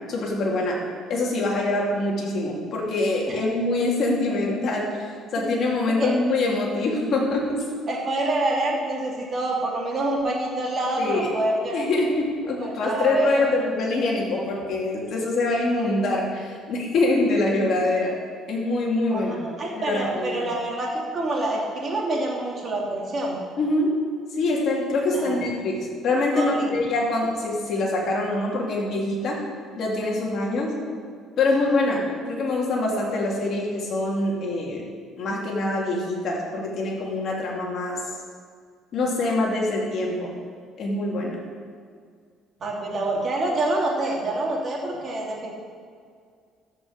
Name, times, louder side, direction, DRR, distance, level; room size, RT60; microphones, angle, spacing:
voice 1, 0.1-0.8 1.1-7.7 11.0-11.3 11.7-18.1 18.5-19.4 19.8-20.4 23.6-24.1 24.4-29.4 29.8-30.8 31.4-34.8 35.2-38.0 38.9-40.3 40.8-41.4, left 2 dB, 50° left, -3 dB, 2.6 m, -24 dB
voice 2, 7.9-11.8 12.6-13.5 19.1-23.4 25.1-25.4 26.3-26.7 42.6-45.5, right 2 dB, 35° right, -2 dB, 2.4 m, -27 dB
13.5 x 5.4 x 6.5 m, 2.1 s
cardioid pair, 145°, 0 cm